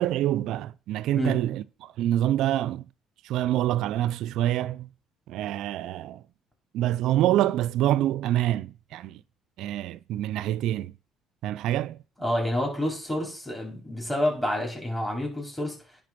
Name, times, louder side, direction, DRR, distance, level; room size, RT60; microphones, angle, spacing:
voice 1, 0.0-2.9 3.2-4.9 5.3-6.2 6.7-9.2 9.6-10.9 11.4-12.0, right 13 dB, 70° right, 0.4 m, -26 dB
voice 2, 12.2-15.8, left 1 dB, 5° left, 4.1 m, -28 dB
10.5 x 3.8 x 5.9 m
supercardioid pair, 70°, 0 cm